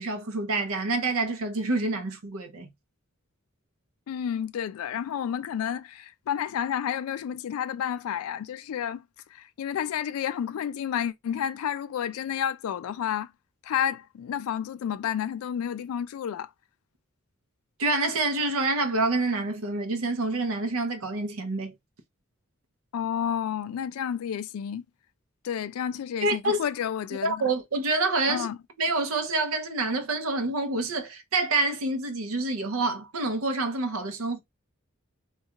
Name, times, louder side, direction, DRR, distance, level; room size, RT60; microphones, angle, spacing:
voice 1, 0.0-2.7 17.8-21.7 26.2-26.6 27.2-28.5 28.8-34.4, right 2 dB, 80° right, 0.6 m, -27 dB
voice 2, 4.1-9.0 9.3-13.3 13.6-16.5 22.9-24.8 25.4-27.5 28.3-28.6, left 9 dB, 85° left, 0.3 m, -30 dB
2.3 x 2.2 x 2.8 m
head